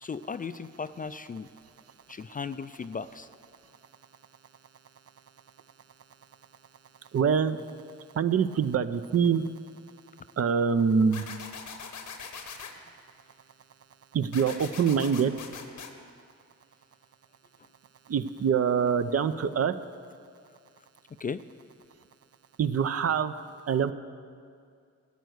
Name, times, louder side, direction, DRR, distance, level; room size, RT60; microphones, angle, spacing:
voice 1, 0.0-1.5 2.1-3.3 21.2-21.4, left 5 dB, 30° left, 13 dB, 0.4 m, -36 dB
voice 2, 7.1-7.6 8.2-9.4 10.4-11.3 14.1-15.4 18.1-19.7 22.6-23.3 23.7-23.9, right 6 dB, 50° right, 11 dB, 0.6 m, -25 dB
sound 1, 11.1-12.7 14.3-15.9, left 6 dB, 75° left, 1.1 m, -41 dB
13.5 x 8.1 x 6.4 m, 2.2 s
cardioid pair, 55°, 30 cm